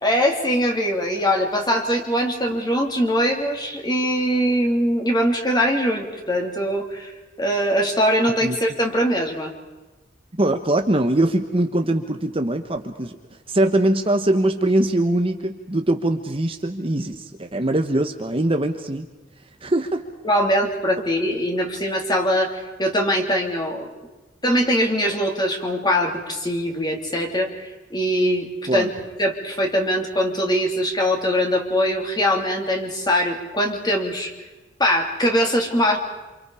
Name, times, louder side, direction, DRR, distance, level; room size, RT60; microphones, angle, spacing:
voice 1, 0.0-7.1 7.4-9.5 20.2-23.9 24.4-28.9 29.2-34.3 34.8-36.0, equal, 20° left, 2 dB, 3.4 m, -22 dB
voice 2, 10.3-13.2 13.5-19.1 19.6-20.0 28.7-28.9, right 1 dB, 30° right, 5 dB, 1.3 m, -22 dB
28.0 x 27.5 x 5.0 m, 1.1 s
head